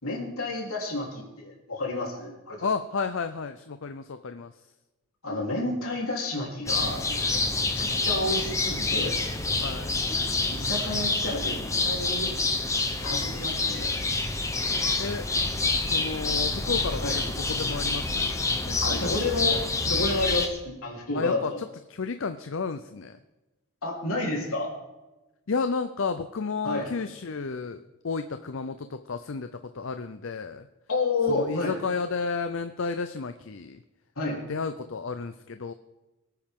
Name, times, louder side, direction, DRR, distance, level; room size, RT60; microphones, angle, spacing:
voice 1, 0.0-2.7 5.2-7.4 7.7-9.2 10.5-11.6 11.8-12.3 13.0-14.0 17.0-17.2 18.8-19.6 19.8-21.6 23.8-24.7 26.6-26.9 30.9-31.8 34.2-34.4, left 2 dB, 75° left, -2 dB, 3.6 m, -30 dB
voice 2, 2.6-4.5 9.6-10.0 15.0-15.3 15.9-17.0 17.6-19.1 21.1-21.5 21.9-23.2 25.5-29.5 29.7-30.7 31.3-33.8 34.5-35.7, left 4 dB, 60° left, 9 dB, 0.6 m, -32 dB
sound 1, 6.7-20.5, left 3 dB, 15° left, 0.9 m, -27 dB
22.0 x 9.3 x 3.7 m, 1.1 s
head